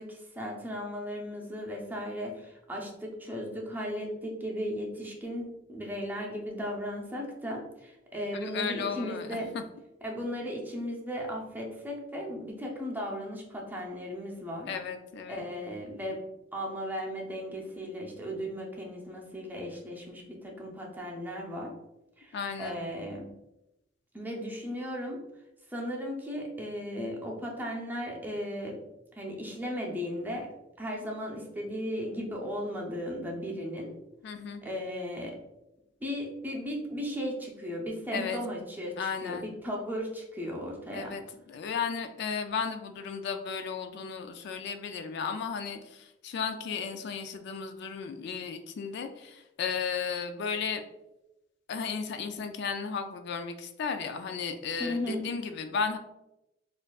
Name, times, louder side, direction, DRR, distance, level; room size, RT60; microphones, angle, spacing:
voice 1, 0.0-9.6 10.0-14.7 15.3-21.8 22.2-23.3 24.1-25.2 25.7-28.8 29.1-30.5 30.8-33.9 34.6-35.4 36.0-41.2 54.8-55.3, equal, 10° right, -1 dB, 0.6 m, -36 dB
voice 2, 8.4-9.4 14.7-15.4 22.3-22.8 34.2-34.6 38.1-38.4 39.0-39.5 40.9-41.2 41.5-50.8 51.7-56.0, left 6 dB, 65° left, 7 dB, 0.3 m, -34 dB
4.3 x 2.5 x 2.3 m, 0.93 s
head